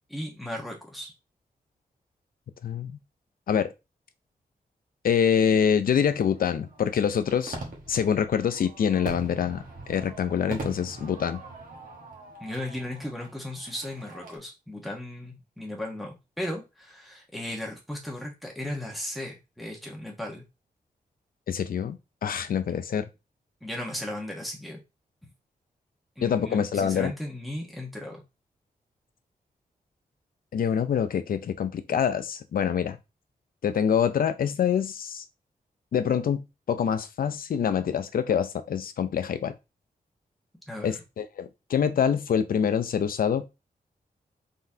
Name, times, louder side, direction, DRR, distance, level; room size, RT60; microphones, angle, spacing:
voice 1, 0.1-1.1 12.4-20.4 23.6-24.8 25.2-25.3 26.2-28.2 40.7-41.0, left 1 dB, ahead, 1.1 m, -36 dB
voice 2, 5.0-7.6 7.9-11.4 21.5-23.1 26.2-27.1 30.5-33.0 33.6-35.2 35.9-39.5 40.8-43.6, left 8 dB, 65° left, 0.5 m, -25 dB
Fireworks, 6.0-14.4, right 3 dB, 60° right, 1.3 m, -42 dB
4.0 x 3.7 x 2.7 m
wide cardioid pair, 165°, 16 cm